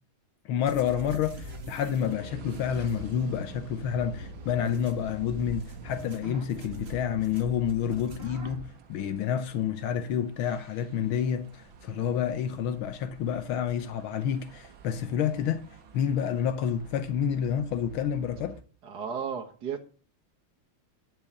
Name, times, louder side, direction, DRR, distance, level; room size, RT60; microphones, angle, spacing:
voice 1, 0.5-15.6 15.9-18.6, left 8 dB, 80° left, 1.7 m, -29 dB
sound 1, 0.7-8.7, right 2 dB, 30° right, 1.8 m, -43 dB
sound 2, 2.0-18.6, right 4 dB, 70° right, 2.1 m, -50 dB
voice 2, 18.8-19.9, right 7 dB, 55° right, 1.8 m, -34 dB
11.0 x 5.7 x 8.6 m
omnidirectional pair, 2.3 m